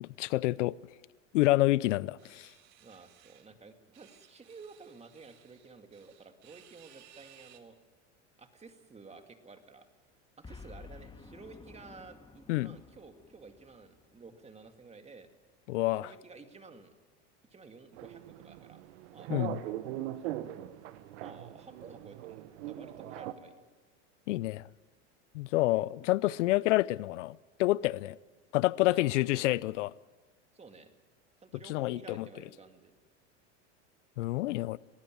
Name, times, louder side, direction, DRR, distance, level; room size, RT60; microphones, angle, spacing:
voice 1, 0.0-0.7 1.3-2.5 12.5-12.8 15.7-16.1 19.3-19.6 24.3-24.6 25.3-28.2 28.5-29.9 31.7-32.3 34.2-34.8, left 18 dB, 80° left, 0.6 m, -28 dB
sound 1, 2.2-3.5 3.9-7.6, right 11 dB, 50° right, 2.2 m, -60 dB
voice 2, 2.8-7.8 8.4-9.9 10.4-15.3 16.0-16.9 17.5-18.8 19.1-19.3 20.2-20.7 21.2-23.6 28.8-29.5 30.5-30.9 31.4-33.0, right 4 dB, 20° right, 2.3 m, -52 dB
Boom, 10.4-14.8, left 4 dB, 15° left, 1.7 m, -52 dB
sound 2, 17.9-23.3, right 14 dB, 70° right, 1.4 m, -40 dB
21.5 x 15.5 x 9.2 m
supercardioid pair, 105°, 36 cm